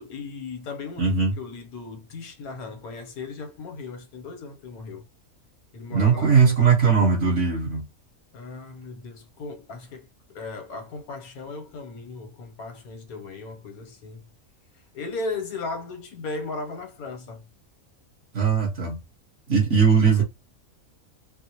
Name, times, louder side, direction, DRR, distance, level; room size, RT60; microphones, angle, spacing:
voice 1, 0.0-5.0 5.7-6.5 8.3-10.1 10.3-14.3 14.9-17.5 19.7-20.2, left 3 dB, 90° left, 1.4 m, -37 dB
voice 2, 1.0-1.3 5.9-7.8 18.3-19.0 19.5-20.2, right 6 dB, 55° right, 1.6 m, -19 dB
4.3 x 2.1 x 2.9 m
omnidirectional pair, 1.5 m